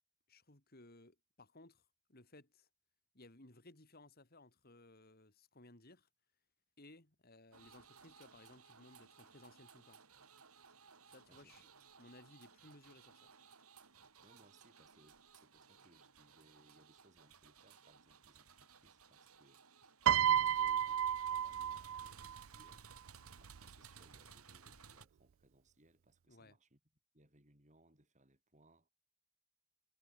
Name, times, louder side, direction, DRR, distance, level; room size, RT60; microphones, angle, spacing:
voice 1, 0.3-2.7 3.1-6.1 6.8-10.0 11.1-11.7 12.0-13.3 26.3-26.6, left 2 dB, 45° left, 3.3 m, -61 dB
sound 1, 7.5-25.1, right 6 dB, 90° right, 4.8 m, -60 dB
voice 2, 11.3-11.6 14.2-22.9 23.4-26.8 27.1-28.9, right 1 dB, 35° right, 5.2 m, -69 dB
Piano, 20.1-22.4 23.5-23.7, right 9 dB, 65° right, 0.4 m, -32 dB
head